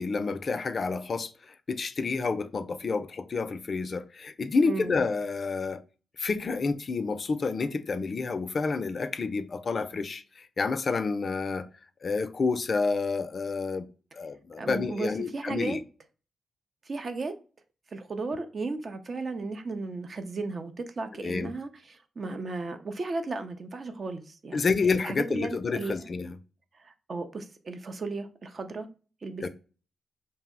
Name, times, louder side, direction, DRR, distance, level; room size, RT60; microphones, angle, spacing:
voice 1, 0.0-5.8 6.2-11.7 12.0-13.9 14.1-15.8 21.2-21.5 24.5-26.4 29.4-29.5, left 4 dB, 55° left, 0.3 m, -29 dB
voice 2, 4.7-5.0 14.6-15.8 16.8-17.3 17.9-24.7 25.0-25.9 26.7-28.9 29.2-29.5, right 3 dB, 50° right, 0.5 m, -35 dB
2.7 x 2.0 x 3.6 m
cardioid pair, 55°, 0 cm